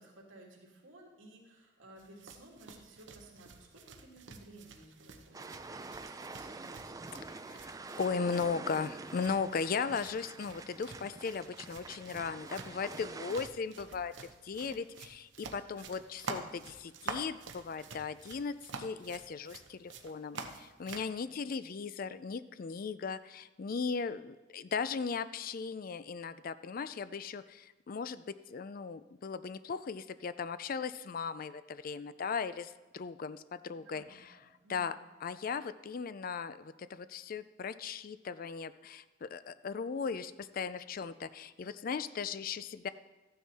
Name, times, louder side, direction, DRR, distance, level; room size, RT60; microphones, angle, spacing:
voice 1, 0.0-7.1 15.7-16.0 21.2-21.4 33.8-35.0, right 2 dB, 80° right, -2 dB, 2.7 m, -56 dB
sound 1, 2.0-21.1, right 4 dB, 65° right, 0.9 m, -49 dB
sound 2, 5.3-13.5, right 3 dB, 15° right, 0.4 m, -46 dB
voice 2, 7.2-7.7 8.0-14.1 14.4-34.3 34.7-35.0 35.2-42.9, left 5 dB, 45° left, 14 dB, 0.4 m, -37 dB
13.5 x 9.4 x 4.2 m, 1.2 s
head